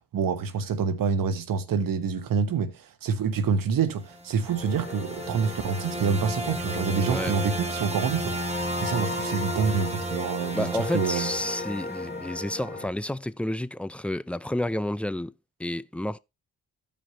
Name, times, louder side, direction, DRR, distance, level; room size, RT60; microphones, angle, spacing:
voice 1, 0.1-11.3, right 6 dB, 70° right, 1.1 m, -27 dB
sound 1, 4.1-12.3, right 1 dB, 20° right, 1.2 m, -34 dB
sound 2, 4.5-12.9, left 3 dB, 25° left, 2.6 m, -37 dB
voice 2, 10.5-15.3 15.6-16.2, left 1 dB, 5° left, 0.4 m, -30 dB
13.5 x 5.2 x 2.8 m
supercardioid pair, 50°, 35 cm